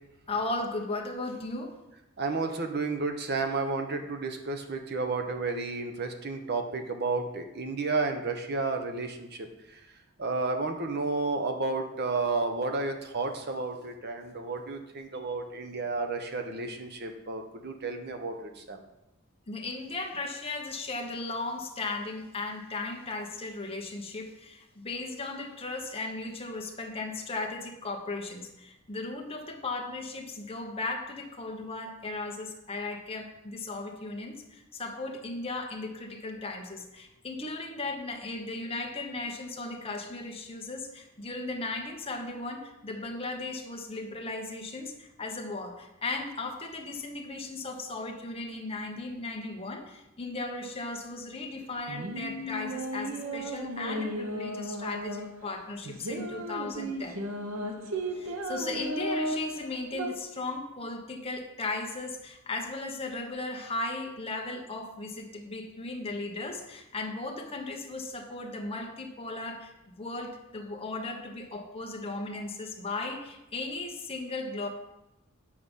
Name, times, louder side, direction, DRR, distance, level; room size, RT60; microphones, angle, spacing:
voice 1, 0.3-1.8 19.5-57.2 58.2-74.7, left 2 dB, 30° left, 2 dB, 1.1 m, -36 dB
voice 2, 2.2-9.5 10.2-18.3 18.7-18.8, right 3 dB, 50° right, 6 dB, 0.9 m, -31 dB
sound 1, 51.6-60.1, right 1 dB, 80° right, 1.0 m, -35 dB
8.6 x 4.8 x 5.4 m, 0.92 s
head